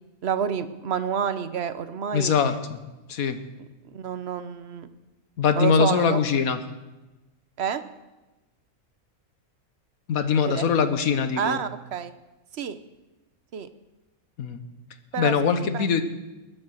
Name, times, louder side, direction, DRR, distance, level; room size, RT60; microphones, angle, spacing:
voice 1, 0.2-2.3 3.9-4.9 5.6-6.2 7.6-7.8 10.5-10.7 11.4-12.1 12.5-12.8 13.5-13.7 15.1-15.3 15.7-16.0, right 7 dB, 55° right, 12 dB, 1.0 m, -28 dB
voice 2, 2.1-2.8 3.1-3.4 5.4-6.6 10.1-11.6 14.4-14.6 15.2-16.0, left 6 dB, 75° left, 9 dB, 1.5 m, -22 dB
20.5 x 8.6 x 6.5 m, 1.1 s
omnidirectional pair, 1.5 m